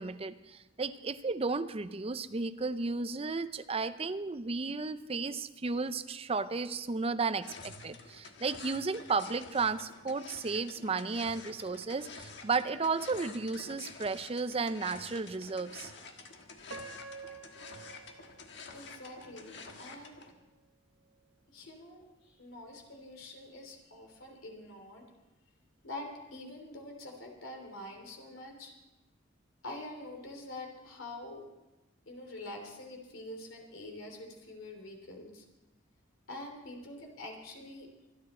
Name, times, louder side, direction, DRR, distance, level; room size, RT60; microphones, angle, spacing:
voice 1, 0.0-15.9, right 4 dB, 30° right, 12 dB, 0.5 m, -33 dB
sound 1, 7.4-20.3, left 4 dB, 60° left, 1.5 m, -49 dB
Piano, 16.7-19.7 20.3-20.4 21.0-21.3, right 4 dB, 70° right, 1.3 m, -49 dB
voice 2, 18.7-20.2 21.5-25.0 25.8-28.7 29.6-31.4 32.1-35.4 36.3-37.9, left 1 dB, 80° left, 3 dB, 3.1 m, -45 dB
25.0 x 10.0 x 4.3 m, 1.0 s
head